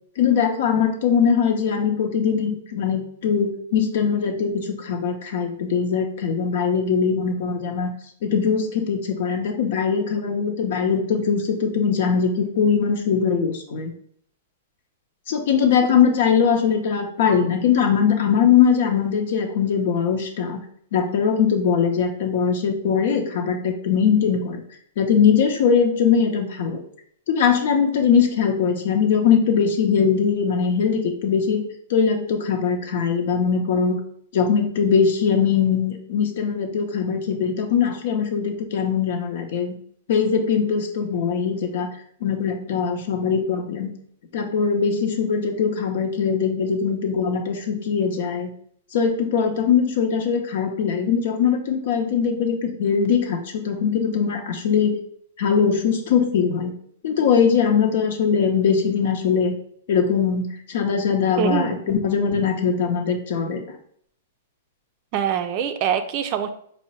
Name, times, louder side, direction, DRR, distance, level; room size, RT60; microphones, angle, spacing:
voice 1, 0.2-7.9 8.2-13.9 15.3-20.6 20.9-24.6 25.0-26.8 27.3-34.0 34.3-39.8 40.1-41.9 42.2-43.9 44.3-48.5 48.9-55.0 55.4-56.7 57.0-59.5 59.9-63.6, left 6 dB, 65° left, 4 dB, 0.8 m, -21 dB
voice 2, 61.4-62.0 65.1-66.5, right 8 dB, 40° right, 8 dB, 0.4 m, -24 dB
4.6 x 2.1 x 4.1 m, 0.65 s
hypercardioid pair, 140°, 0 cm